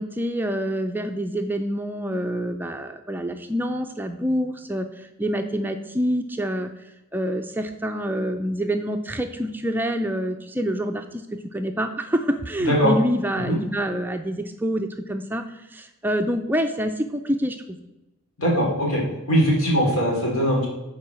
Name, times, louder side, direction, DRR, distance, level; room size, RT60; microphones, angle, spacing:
voice 1, 0.0-6.7 7.1-17.8, equal, 10° right, 5 dB, 0.4 m, -27 dB
voice 2, 12.6-12.9 13.5-13.6 18.4-19.0 19.3-20.7, equal, 80° left, -3 dB, 3.1 m, -20 dB
7.4 x 4.7 x 6.1 m, 0.98 s
head